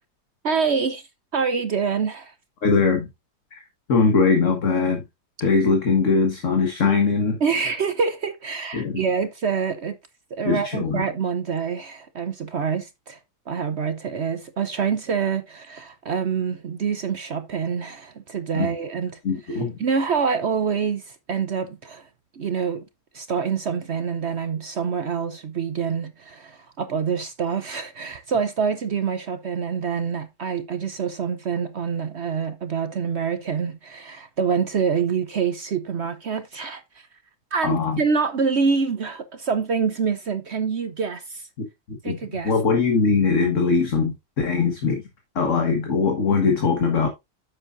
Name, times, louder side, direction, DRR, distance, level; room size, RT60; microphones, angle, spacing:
voice 1, 0.4-2.3 7.4-10.0 10.3-13.2 13.5-19.2 19.5-22.1 22.3-22.8 23.1-37.1 37.5-41.5 42.0-42.5, right 6 dB, 55° right, 0.8 m, -26 dB
voice 2, 2.6-3.1 3.5-3.6 3.9-5.0 5.4-7.4 8.7-9.1 10.5-11.0 18.5-18.7 19.2-19.8 37.6-38.0 41.6-42.2 42.4-45.0 45.4-47.1, left 4 dB, 50° left, 1.8 m, -21 dB
9.9 x 7.4 x 2.5 m
omnidirectional pair, 1.8 m